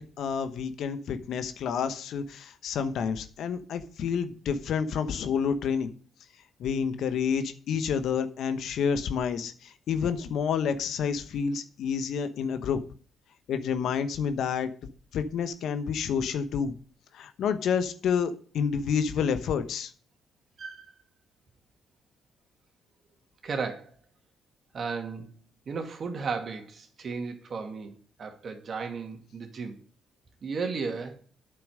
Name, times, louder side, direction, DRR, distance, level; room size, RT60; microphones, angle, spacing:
voice 1, 0.0-5.9 6.6-12.8 13.5-14.7 15.1-16.7 17.1-19.9, left 7 dB, 70° left, 10 dB, 1.0 m, -29 dB
voice 2, 23.4-23.9 24.7-25.4 25.7-29.8 30.4-31.2, right 5 dB, 55° right, 4 dB, 2.2 m, -34 dB
8.7 x 6.9 x 6.4 m, 0.43 s
supercardioid pair, 55°, 0 cm